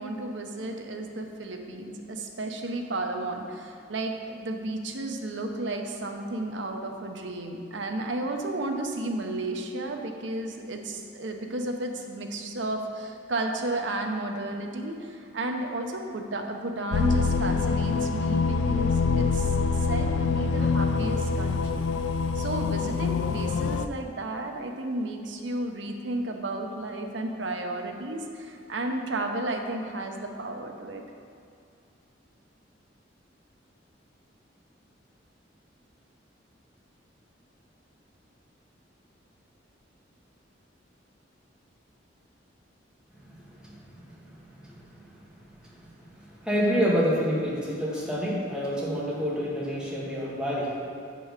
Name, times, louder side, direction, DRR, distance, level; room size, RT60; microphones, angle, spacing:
voice 1, 0.0-21.9 22.3-31.0, right 2 dB, 75° right, 3 dB, 0.9 m, -33 dB
sound 1, 16.9-23.9, left 4 dB, 85° left, 0.4 m, -25 dB
voice 2, 46.4-50.7, equal, 5° right, -7 dB, 1.7 m, -27 dB
7.5 x 5.4 x 6.5 m, 2.4 s
head